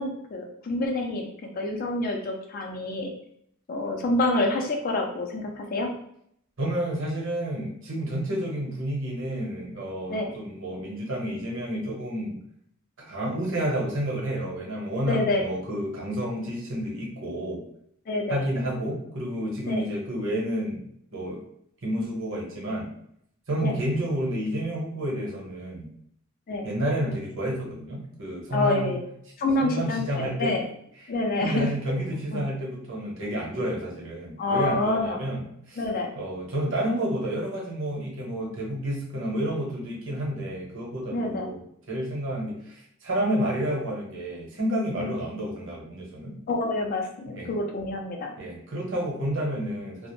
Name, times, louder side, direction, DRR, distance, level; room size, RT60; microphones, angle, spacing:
voice 1, 0.0-3.1 3.7-5.9 10.1-10.3 15.0-15.4 18.1-18.4 19.7-19.8 23.6-23.7 26.5-26.7 28.5-29.0 29.4-30.7 31.1-31.7 32.3-32.4 34.4-35.2 35.8-36.1 41.1-41.5 45.0-45.1 46.5-48.3, left 2 dB, 45° left, 2 dB, 0.4 m, -27 dB
voice 2, 6.6-12.4 13.0-17.6 18.3-20.8 21.1-21.4 21.8-22.9 23.5-25.9 26.6-28.9 29.6-30.6 31.0-31.1 31.4-35.8 36.2-46.4 47.3-47.5 48.4-50.1, right 1 dB, 65° right, -3 dB, 0.9 m, -30 dB
2.4 x 2.0 x 3.0 m, 0.71 s
head